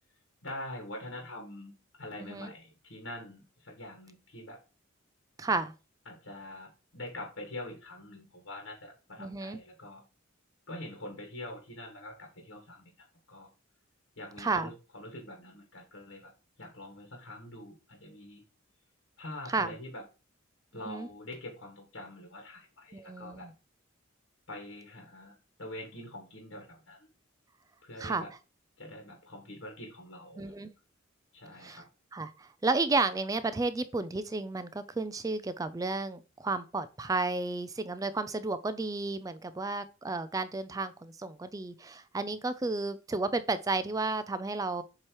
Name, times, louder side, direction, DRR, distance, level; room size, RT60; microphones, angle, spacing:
voice 1, 0.4-4.6 5.5-5.6 6.0-10.0 10.7-13.5 14.2-16.3 16.6-18.4 19.2-20.0 20.7-23.5 24.5-27.1 27.8-28.3 28.8-30.6 31.3-31.9, left 1 dB, 80° left, 1.8 m, -45 dB
voice 2, 5.4-5.7 9.2-9.6 14.4-14.7 19.5-19.7 20.9-21.1 22.9-23.5 28.0-28.2 30.4-30.7 31.6-31.8 32.1-44.8, right 3 dB, 15° right, 0.3 m, -32 dB
7.5 x 3.0 x 4.7 m
head